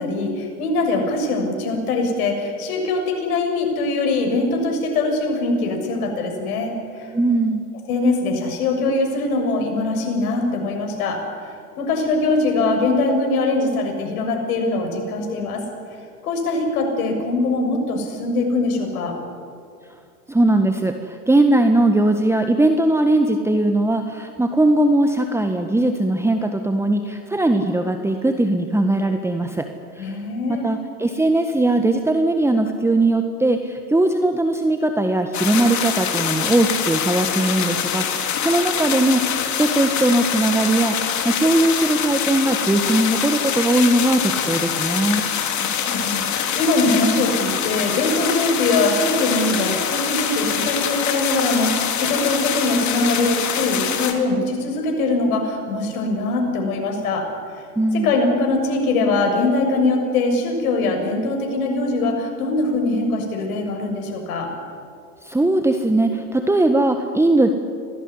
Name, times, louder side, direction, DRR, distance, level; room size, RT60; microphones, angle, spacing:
voice 1, 0.0-7.1 7.9-15.6 16.2-19.2 30.0-30.6 45.6-57.3 57.9-64.5, left 2 dB, 65° left, 3 dB, 7.2 m, -22 dB
voice 2, 7.1-7.6 20.3-29.7 29.9-30.2 30.5-45.3 57.7-58.1 65.2-67.5, right 2 dB, 5° right, 6 dB, 1.6 m, -19 dB
sound 1, 35.3-54.1, left 8 dB, 40° left, 3.4 m, -24 dB
25.5 x 19.0 x 9.9 m, 2.4 s
hypercardioid pair, 90°, 45 cm